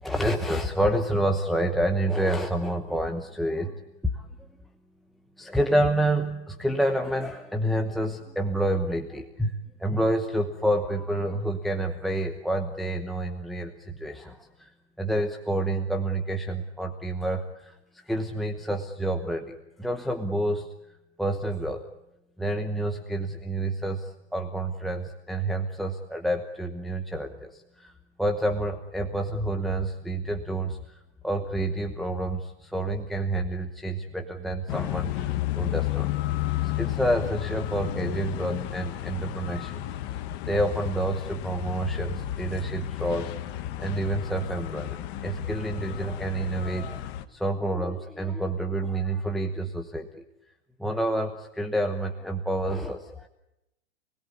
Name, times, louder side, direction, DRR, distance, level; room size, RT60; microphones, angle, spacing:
voice 1, 0.0-4.3 5.4-14.7 15.0-20.7 21.2-21.9 22.4-27.9 28.2-36.1 36.6-40.2 40.5-50.2 50.8-53.3, right 1 dB, ahead, 3 dB, 1.0 m, -28 dB
sound 1, 34.7-47.2, left 14 dB, 35° left, 1.4 m, -32 dB
29.0 x 20.0 x 8.4 m, 0.89 s
supercardioid pair, 155°, 33 cm